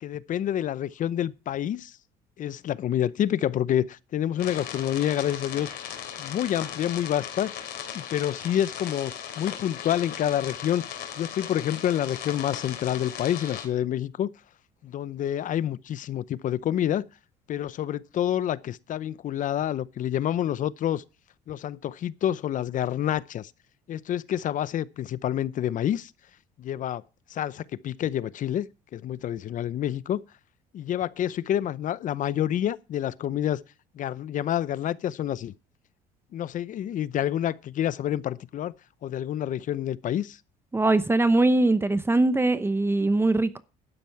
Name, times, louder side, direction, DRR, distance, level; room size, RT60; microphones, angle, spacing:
voice 1, 0.0-2.0 2.4-5.7 6.2-7.5 7.9-10.9 11.2-14.3 14.8-17.0 17.5-21.0 21.5-23.5 23.9-26.1 26.6-27.0 27.3-30.2 30.7-33.6 33.9-35.5 36.3-38.7 39.0-40.4, left 11 dB, 50° left, 0.7 m, -28 dB
sound 1, 4.4-13.7, left 9 dB, 70° left, 3.3 m, -38 dB
voice 2, 40.7-43.6, right 2 dB, 15° right, 0.8 m, -22 dB
12.0 x 9.2 x 4.6 m
cardioid pair, 105°, 17 cm